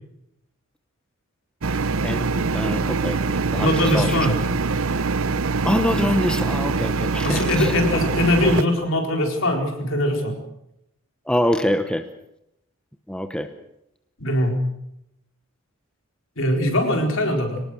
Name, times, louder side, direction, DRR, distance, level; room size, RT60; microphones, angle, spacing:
sound 1, 1.6-8.6, right 4 dB, 75° right, 0.8 m, -24 dB
voice 1, 2.0-4.3 5.6-7.8 11.3-12.1 13.1-13.5, equal, 5° left, 7 dB, 1.0 m, -25 dB
voice 2, 3.6-4.4 7.2-10.4 14.2-14.6 16.4-17.6, left 1 dB, 65° left, 3 dB, 4.3 m, -21 dB
24.5 x 19.0 x 6.4 m, 0.80 s
head